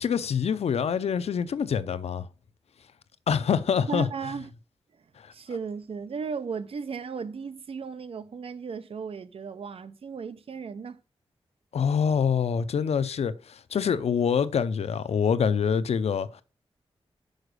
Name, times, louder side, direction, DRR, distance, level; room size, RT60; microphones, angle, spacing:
voice 1, 0.0-2.3 3.3-4.1 11.7-16.4, left 7 dB, 90° left, 0.6 m, -25 dB
voice 2, 3.9-4.5 5.3-11.0, right 5 dB, 65° right, 0.7 m, -35 dB
6.5 x 4.8 x 6.5 m
wide cardioid pair, 140°, 10 cm